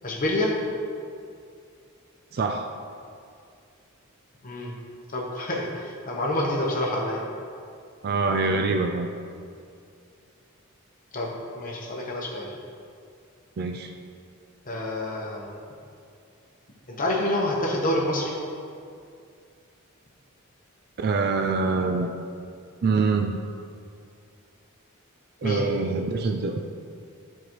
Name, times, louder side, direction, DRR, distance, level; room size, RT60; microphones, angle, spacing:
voice 1, 0.0-0.5 4.4-4.7 5.1-7.2 11.1-12.6 14.7-15.5 16.9-18.4 25.4-25.7, left 1 dB, 40° left, -2 dB, 0.9 m, -27 dB
voice 2, 2.3-2.7 8.0-9.1 13.6-13.9 21.0-22.1 22.8-23.4 25.4-26.6, right 4 dB, 45° right, 4 dB, 0.4 m, -25 dB
12.0 x 4.8 x 3.0 m, 2.3 s
head